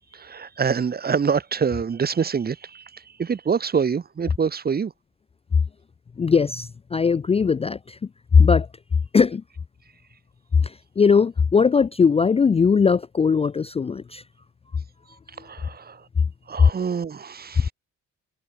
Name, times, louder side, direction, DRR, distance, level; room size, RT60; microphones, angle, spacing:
voice 1, 0.1-4.9 15.4-16.0 16.5-17.7, right 6 dB, 30° right, 1.0 m, -26 dB
voice 2, 6.2-8.0 8.4-8.7 9.1-9.4 10.6-14.2, left 5 dB, 20° left, 0.4 m, -19 dB
cardioid pair, 90°, 30 cm